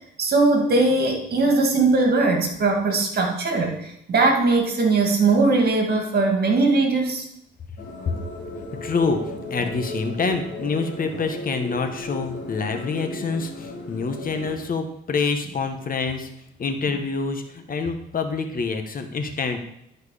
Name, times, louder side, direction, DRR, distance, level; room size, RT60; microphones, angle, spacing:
voice 1, 0.2-7.2, right 3 dB, 50° right, 2 dB, 2.3 m, -20 dB
sound 1, 7.8-14.6, left 1 dB, 65° left, 2.5 m, -35 dB
voice 2, 8.8-16.3 16.6-19.6, left 4 dB, 45° left, 6 dB, 1.2 m, -26 dB
12.0 x 4.6 x 4.9 m, 0.77 s
cardioid pair, 90°, 20 cm